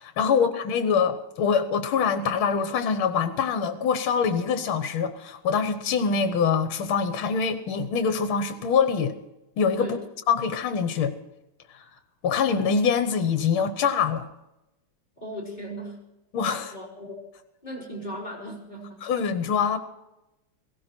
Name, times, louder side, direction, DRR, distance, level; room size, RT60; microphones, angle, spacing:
voice 1, 0.0-9.1 9.6-10.0 10.3-11.1 11.7-11.8 12.2-14.3 16.3-16.7 19.0-19.8, left 6 dB, 75° left, 9 dB, 1.9 m, -24 dB
voice 2, 15.2-16.0 16.7-17.2 17.6-19.0, equal, 20° left, -3 dB, 3.9 m, -37 dB
17.5 x 17.0 x 4.4 m, 0.93 s
omnidirectional pair, 2.3 m